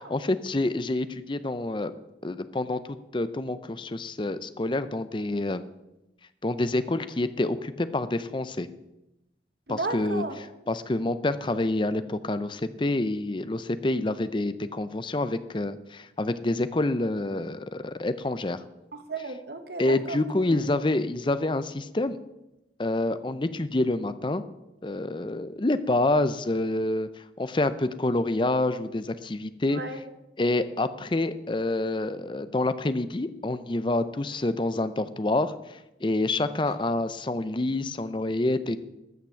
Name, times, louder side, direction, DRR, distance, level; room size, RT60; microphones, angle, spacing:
voice 1, 0.1-1.9 2.2-5.6 6.4-8.7 9.7-10.2 10.7-18.6 19.8-22.2 22.8-24.4 24.8-27.1 27.4-29.8 30.4-38.8, left 2 dB, 25° left, 13 dB, 0.5 m, -27 dB
voice 2, 9.7-10.4 18.9-20.6 29.7-30.0, right 3 dB, 65° right, 7 dB, 1.3 m, -34 dB
13.0 x 5.9 x 7.7 m, 0.94 s
head